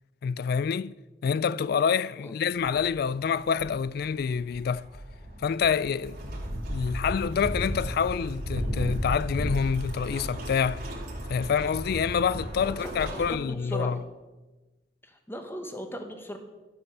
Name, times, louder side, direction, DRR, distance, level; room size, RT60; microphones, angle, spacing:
voice 1, 0.2-0.9 1.2-4.9 5.4-6.2 6.7-10.9 11.3-14.0, left 6 dB, 60° left, 0.3 m, -27 dB
sound 1, 2.6-13.3, equal, 55° right, 2.6 m, -34 dB
voice 2, 12.6-14.0 15.0-16.4, equal, 15° left, 1.3 m, -38 dB
12.0 x 7.7 x 6.7 m
head